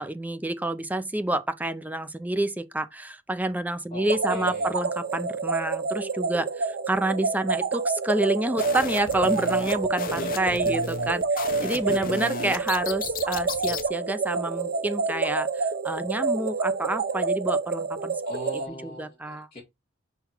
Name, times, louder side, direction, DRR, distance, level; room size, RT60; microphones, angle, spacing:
voice 1, 0.0-18.1 18.8-19.5, right 1 dB, 10° right, 0.5 m, -28 dB
voice 2, 3.9-4.7 10.1-10.7 11.5-11.8 18.3-19.6, equal, 30° left, 2.0 m, -40 dB
sound 1, 4.0-18.7, right 4 dB, 50° right, 0.7 m, -28 dB
sound 2, 8.6-13.9, left 5 dB, 45° left, 0.7 m, -35 dB
5.7 x 4.0 x 4.3 m
head